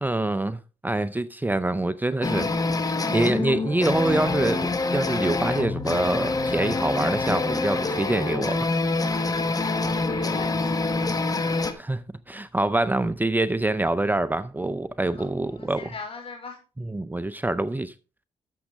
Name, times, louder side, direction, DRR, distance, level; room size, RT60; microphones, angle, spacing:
voice 1, 0.0-2.5 2.8-8.7 11.7-15.9 16.8-17.9, right 2 dB, 15° right, 0.6 m, -26 dB
sound 1, 2.2-11.7, left 3 dB, 30° left, 1.4 m, -26 dB
voice 2, 9.5-10.7 15.1-16.6, left 4 dB, 50° left, 5.1 m, -39 dB
11.5 x 7.2 x 3.6 m
supercardioid pair, 55°, 12 cm